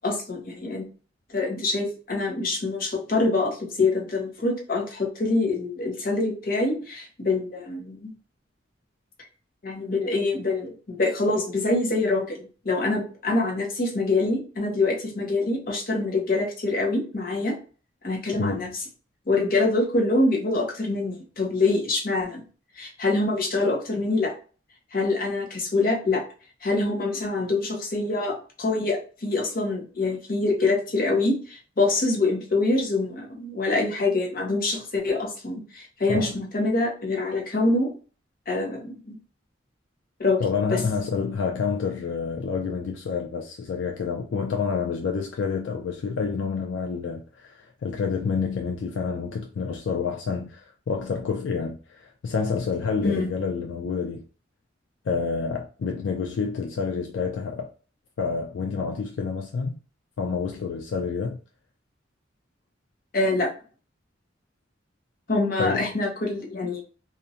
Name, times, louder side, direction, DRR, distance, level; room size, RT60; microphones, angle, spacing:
voice 1, 0.0-0.9 1.3-8.1 9.6-17.6 18.0-18.8 19.3-22.4 22.8-24.3 24.9-26.2 26.6-37.9 38.5-39.2 40.2-40.4 40.7-40.8 53.0-53.3 63.1-63.5 65.3-66.8, left 2 dB, 50° left, 0.8 m, -25 dB
voice 2, 18.4-18.7 36.1-36.4 40.4-54.2 55.1-57.7 58.2-59.7 60.2-61.4 65.6-65.9, left 5 dB, 80° left, 0.4 m, -28 dB
2.5 x 2.1 x 2.7 m
head